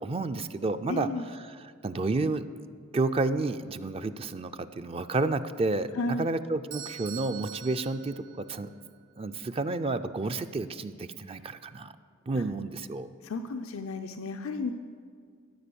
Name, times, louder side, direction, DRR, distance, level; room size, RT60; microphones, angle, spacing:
voice 1, 0.0-1.1 1.8-2.4 2.9-8.7 9.2-11.9 12.3-13.1, right 3 dB, 30° right, 10 dB, 0.4 m, -30 dB
voice 2, 0.9-1.3 5.9-6.3 12.3-12.4 13.2-14.7, left 3 dB, 85° left, 7 dB, 0.6 m, -33 dB
Bell / Doorbell, 6.7-8.8, right 12 dB, 60° right, 2.1 m, -44 dB
14.0 x 9.0 x 6.9 m, 2.1 s
head